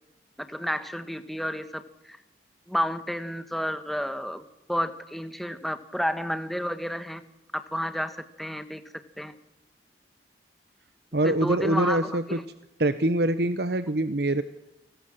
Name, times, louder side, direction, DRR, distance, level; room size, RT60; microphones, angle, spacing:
voice 1, 0.4-2.2 2.7-4.4 4.7-7.2 7.5-8.8 9.2-9.3 11.2-12.4, equal, ahead, 9 dB, 1.4 m, -31 dB
voice 2, 11.1-12.4 12.8-14.4, right 1 dB, 60° right, 11 dB, 1.0 m, -24 dB
29.5 x 19.5 x 7.5 m, 0.92 s
head